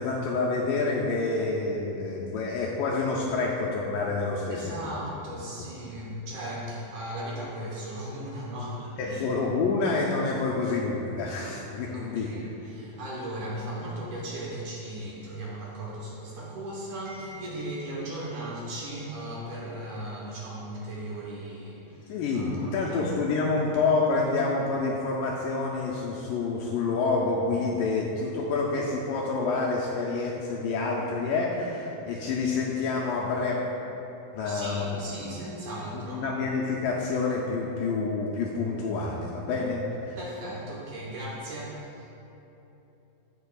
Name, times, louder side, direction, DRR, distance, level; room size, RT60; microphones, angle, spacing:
voice 1, 0.0-4.7 9.0-12.3 22.1-33.6 34.3-35.3 35.9-40.2, left 3 dB, 80° left, -2 dB, 2.0 m, -28 dB
voice 2, 4.5-9.3 11.9-23.0 34.4-36.3 40.2-42.1, right 1 dB, 65° right, -6 dB, 2.1 m, -37 dB
15.0 x 5.2 x 2.4 m, 3.0 s
omnidirectional pair, 4.3 m